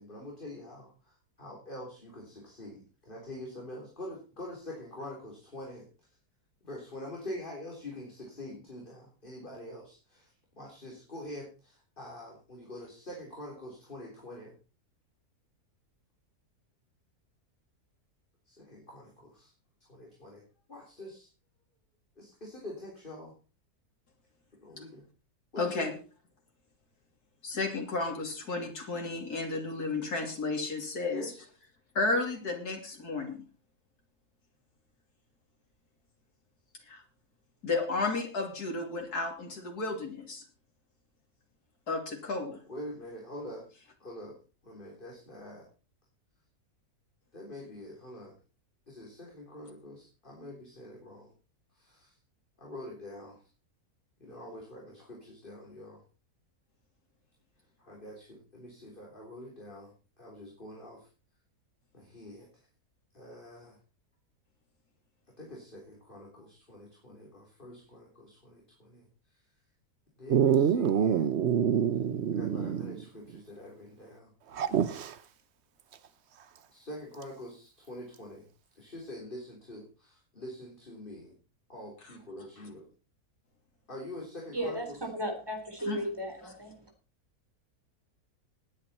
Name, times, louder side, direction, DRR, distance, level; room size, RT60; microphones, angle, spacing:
voice 1, 0.0-5.8 6.6-10.3 10.6-14.5 18.5-19.5 19.9-20.4 20.7-21.3 22.2-23.3 24.6-25.0 25.5-26.0 31.1-31.4 42.7-43.6 44.0-44.4 44.6-45.7 47.3-48.3 48.9-51.3 51.8-52.1 52.6-53.4 54.2-56.0 57.8-61.1 61.9-62.5 63.1-63.8 65.4-69.1 70.2-71.3 72.3-74.3 76.7-78.5 78.8-81.3 81.7-82.9 83.9-85.0, left 1 dB, 35° left, -2 dB, 3.8 m, -45 dB
voice 2, 25.6-25.9 27.4-31.2 31.9-33.4 36.9-37.0 37.6-40.4 41.9-42.6 85.9-86.0, left 3 dB, 80° left, 2 dB, 3.5 m, -32 dB
Dog, 70.3-73.0 73.3-73.4 74.5-75.1 77.2-77.3, right 8 dB, 55° right, 0.9 m, -26 dB
voice 3, 84.5-84.9 85.1-86.8, equal, 15° right, 3 dB, 3.9 m, -35 dB
19.5 x 9.3 x 4.3 m, 0.35 s
omnidirectional pair, 1.6 m